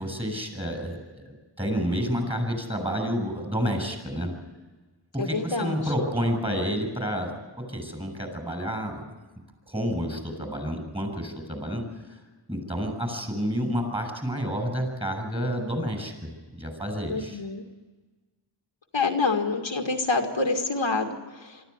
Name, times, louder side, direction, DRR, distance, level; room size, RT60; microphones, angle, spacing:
voice 1, 0.0-4.3 5.1-7.3 7.6-9.0 9.7-11.8 12.5-17.4, equal, 10° right, 5 dB, 6.5 m, -29 dB
voice 2, 5.2-5.8 17.1-17.6 18.9-21.6, left 3 dB, 65° left, 3 dB, 2.0 m, -27 dB
24.0 x 14.0 x 9.7 m, 1.3 s
wide cardioid pair, 70°, 48 cm